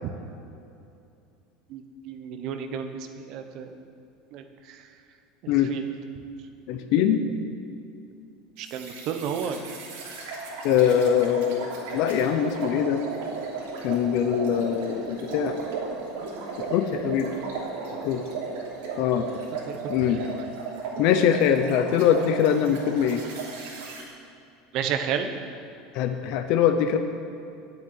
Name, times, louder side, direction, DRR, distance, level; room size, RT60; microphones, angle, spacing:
voice 1, 1.7-3.8 4.3-4.8 5.4-5.8 8.6-9.8 19.7-19.8 20.1-20.4 24.7-25.3, right 7 dB, 40° right, 6 dB, 0.9 m, -32 dB
voice 2, 6.7-7.2 10.6-13.0 13.8-15.6 16.6-17.3 18.0-18.2 19.0-19.3 19.9-20.2 21.0-23.2 25.9-27.0, left 9 dB, 45° left, 7 dB, 0.6 m, -23 dB
sound 1, 8.6-24.0, right 4 dB, 80° right, 3.1 m, -35 dB
9.4 x 8.1 x 8.8 m, 2.6 s
cardioid pair, 180°, 0 cm